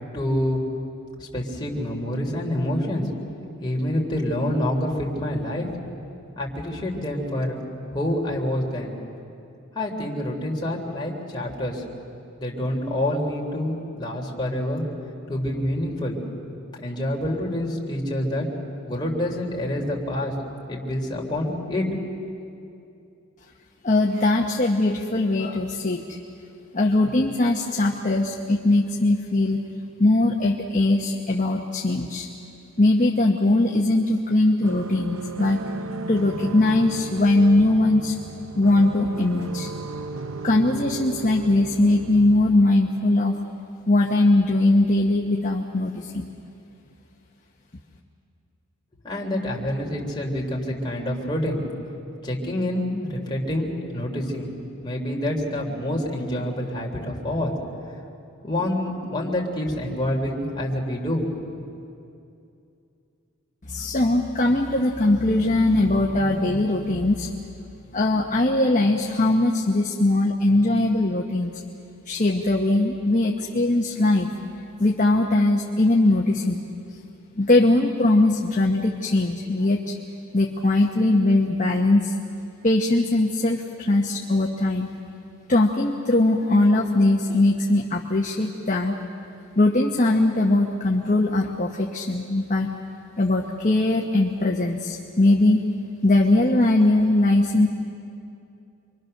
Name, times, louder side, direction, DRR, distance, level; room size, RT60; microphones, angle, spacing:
voice 1, 0.1-0.6 1.2-3.0 3.6-5.7 6.4-7.6 7.9-8.9 9.7-11.8 12.4-14.8 15.3-16.2 16.7-18.5 18.9-20.3 20.7-21.9 49.0-51.6 52.2-54.5 54.8-57.6 58.4-61.3, left 1 dB, 20° left, -2 dB, 3.4 m, -27 dB
voice 2, 23.8-26.2 26.7-29.6 30.0-32.3 32.8-35.6 36.1-38.2 38.6-39.7 40.4-43.4 43.9-46.3 63.7-67.3 67.9-71.6 72.1-74.3 74.8-76.6 77.4-79.9 80.3-82.1 82.6-84.9 85.5-89.0 89.6-92.7 93.2-95.6 96.0-97.7, left 2 dB, 35° left, 0 dB, 1.2 m, -20 dB
sound 1, 34.6-42.6, right 3 dB, 60° right, 0.7 m, -35 dB
28.5 x 24.0 x 6.7 m, 2.6 s
head